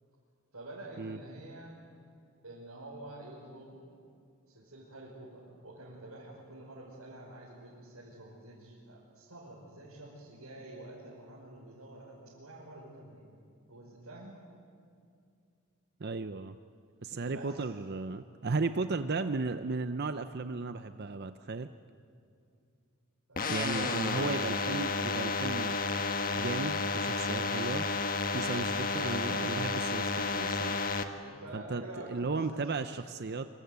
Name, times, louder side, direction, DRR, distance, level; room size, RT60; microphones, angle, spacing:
voice 1, 0.5-1.8 2.4-3.8 4.5-13.3 13.7-14.4 17.3-17.6 23.3-24.4 31.2-33.0 33.3-33.4, right 1 dB, 85° right, -5 dB, 5.6 m, -48 dB
voice 2, 16.0-16.6 17.0-21.7 23.5-25.8 26.3-27.9 28.3-30.8 31.5-33.5, right 3 dB, 50° right, 10 dB, 0.6 m, -35 dB
sound 1, 23.4-31.0, left 4 dB, 40° left, 1.4 m, -31 dB
25.5 x 25.0 x 8.2 m, 2.4 s
head